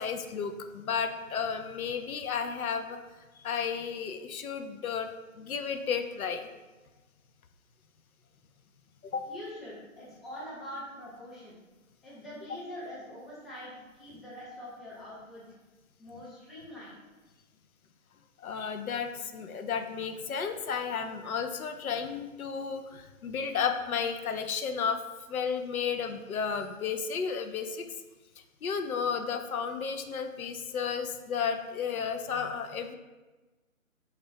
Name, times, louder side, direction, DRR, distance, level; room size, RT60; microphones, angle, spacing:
voice 1, 0.0-3.0 3.4-5.1 5.4-6.5 9.0-9.2 18.4-25.0 25.3-27.9 28.6-33.0, left 6 dB, 80° left, 7 dB, 0.6 m, -33 dB
voice 2, 9.3-11.6 12.0-15.4 16.0-17.0, equal, ahead, -9 dB, 0.3 m, -44 dB
4.1 x 2.4 x 3.5 m, 1.2 s
hypercardioid pair, 160°, 42 cm